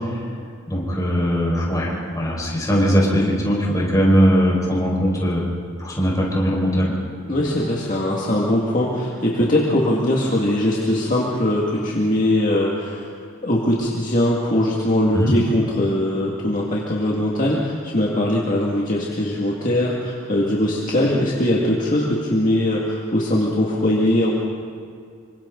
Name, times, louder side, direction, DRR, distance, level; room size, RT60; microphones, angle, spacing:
voice 1, 0.7-5.5 5.8-6.9 15.1-15.3, equal, 15° left, -3 dB, 5.2 m, -20 dB
voice 2, 7.3-13.1 13.4-24.3, left 1 dB, 40° left, -4 dB, 2.1 m, -21 dB
Bass guitar, 7.5-12.2 12.5-13.7, right 1 dB, 45° right, 4.2 m, -44 dB
26.5 x 25.0 x 3.9 m, 2.2 s
head